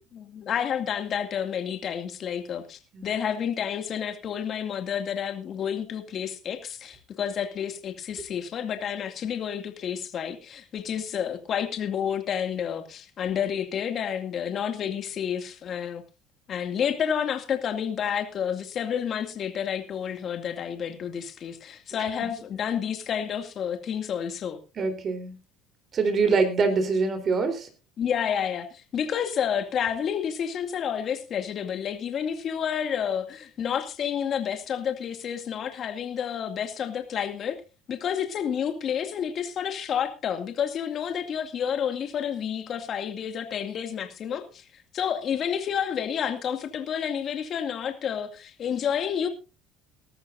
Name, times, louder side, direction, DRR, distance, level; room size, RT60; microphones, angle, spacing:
voice 1, 0.1-16.0 16.5-24.6 28.0-37.6 37.9-49.3, left 8 dB, 50° left, 2.3 m, -30 dB
voice 2, 24.8-25.3 25.9-27.7, right 4 dB, 45° right, 3.8 m, -24 dB
19.0 x 13.5 x 2.6 m
supercardioid pair, 85°, 0 cm